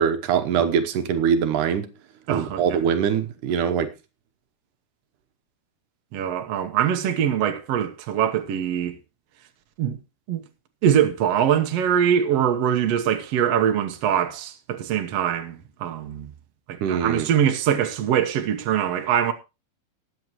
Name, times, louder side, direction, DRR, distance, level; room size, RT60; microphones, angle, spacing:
voice 1, 0.0-1.9 2.3-3.9 16.8-17.3, right 7 dB, 85° right, 2.5 m, -23 dB
voice 2, 2.3-2.8 6.1-9.0 9.8-10.0 10.3-10.4 10.8-16.3 16.7-19.3, right 9 dB, 60° right, 2.0 m, -23 dB
20.0 x 8.2 x 3.0 m
omnidirectional pair, 3.6 m